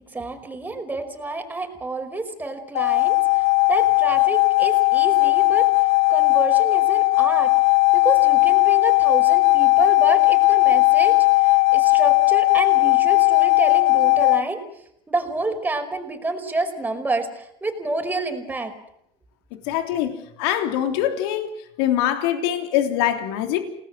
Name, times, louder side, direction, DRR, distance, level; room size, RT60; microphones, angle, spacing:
voice 1, 0.1-3.2 3.7-5.7 6.1-7.5 7.9-14.6 15.1-18.7, right 2 dB, 15° right, 5.2 m, -28 dB
sound 1, 2.7-14.4, left 26 dB, 60° left, 1.1 m, -17 dB
voice 2, 19.7-21.5 21.8-23.6, left 11 dB, 80° left, 3.4 m, -23 dB
29.5 x 19.5 x 7.7 m
supercardioid pair, 110°, 13 cm